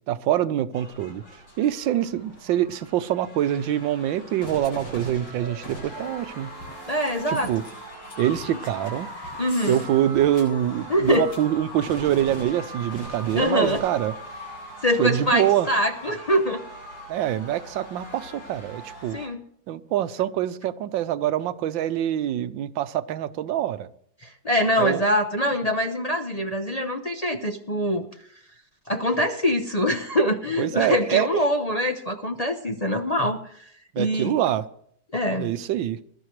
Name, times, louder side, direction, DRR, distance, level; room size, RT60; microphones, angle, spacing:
voice 1, 0.1-1.2 1.6-6.5 7.3-7.6 8.2-9.1 9.7-14.1 15.0-15.7 17.1-19.2 19.7-23.9 24.8-25.0 30.6-31.4 33.9-34.6 35.4-36.0, right 11 dB, 90° right, 13 dB, 1.5 m, -25 dB
sound 1, 0.7-19.3, equal, 85° left, 8.2 m, -40 dB
voice 2, 6.9-7.5 9.4-9.8 10.9-11.3 13.3-13.8 14.8-16.6 19.1-19.4 24.2-28.1 28.9-33.7 34.0-34.3 35.1-35.5, equal, 40° left, 3 dB, 0.5 m, -24 dB
20.0 x 12.0 x 3.2 m, 0.65 s
omnidirectional pair, 2.0 m